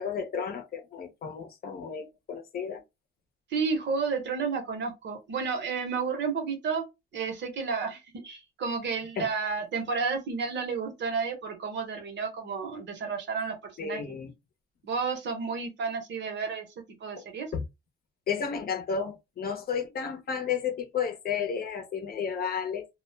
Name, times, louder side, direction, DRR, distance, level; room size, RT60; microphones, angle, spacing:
voice 1, 0.0-2.8 9.2-9.3 13.8-14.3 17.2-17.3 17.5-17.6 18.3-22.9, left 6 dB, 50° left, 0.7 m, -32 dB
voice 2, 3.5-6.8 7.1-14.2 14.8-16.7 17.0-17.5, right 5 dB, 60° right, 1.1 m, -31 dB
2.4 x 2.0 x 3.2 m
cardioid pair, 90°, 20 cm